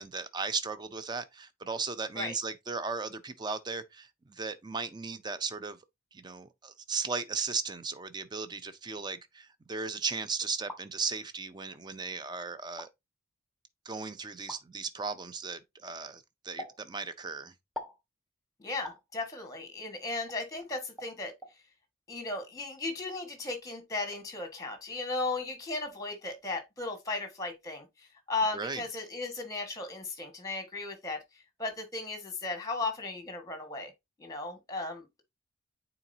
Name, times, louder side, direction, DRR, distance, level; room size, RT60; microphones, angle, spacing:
voice 1, 0.0-5.8 6.1-12.9 13.9-17.5 28.5-28.8, right 4 dB, 20° right, 0.5 m, -36 dB
sound 1, 10.4-10.8 11.7-11.8 12.6-12.9 14.5-14.6 16.6-16.8 17.8-18.0 18.8-19.0 20.3-20.4 21.0-21.1 21.4-21.5, left 2 dB, ahead, 0.9 m, -42 dB
voice 2, 18.6-21.3 22.1-27.9 28.3-31.2 31.6-33.9 34.2-35.2, left 3 dB, 20° left, 1.5 m, -36 dB
8.8 x 3.9 x 2.7 m
head